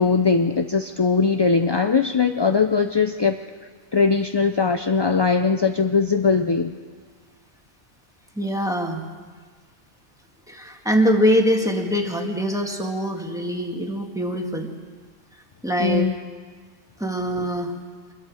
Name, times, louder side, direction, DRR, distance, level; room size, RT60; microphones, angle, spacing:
voice 1, 0.0-3.4 3.9-6.7 15.8-16.1, left 5 dB, 35° left, 6 dB, 0.4 m, -20 dB
voice 2, 8.4-9.0 10.5-14.7 15.6-16.1 17.0-17.7, equal, 5° right, 2 dB, 1.9 m, -23 dB
26.5 x 22.0 x 5.0 m, 1.5 s
omnidirectional pair, 1.2 m